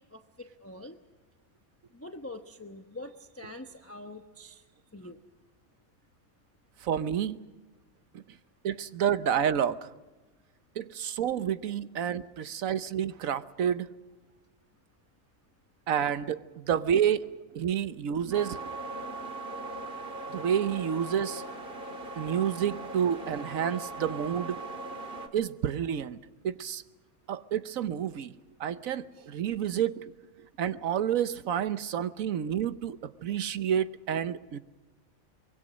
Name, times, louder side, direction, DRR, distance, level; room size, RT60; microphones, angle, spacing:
voice 1, 0.1-1.0 1.9-4.6 4.9-5.2, left 1 dB, 10° left, 0.9 m, -44 dB
voice 2, 6.8-7.4 8.6-9.9 10.8-13.9 15.9-17.2 17.5-18.6 20.3-21.4 22.2-24.6 25.3-26.2 26.4-26.8 27.3-28.3 28.6-30.0 30.6-34.6, right 9 dB, 75° right, 1.3 m, -29 dB
sound 1, 18.3-25.3, right 2 dB, 40° right, 2.0 m, -39 dB
24.5 x 22.0 x 6.3 m
omnidirectional pair, 1.4 m